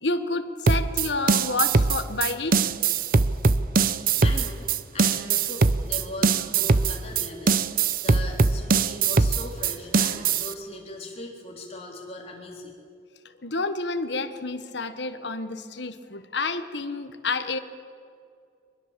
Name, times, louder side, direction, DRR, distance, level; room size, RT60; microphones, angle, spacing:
voice 1, 0.0-2.7 13.4-17.6, left 3 dB, 65° left, 10 dB, 1.3 m, -29 dB
sound 1, 0.7-10.5, right 4 dB, 45° right, 0.6 m, -22 dB
voice 2, 4.2-4.7 4.9-12.7, left 2 dB, 30° left, 0 dB, 3.7 m, -39 dB
24.5 x 21.0 x 7.5 m, 2.3 s
head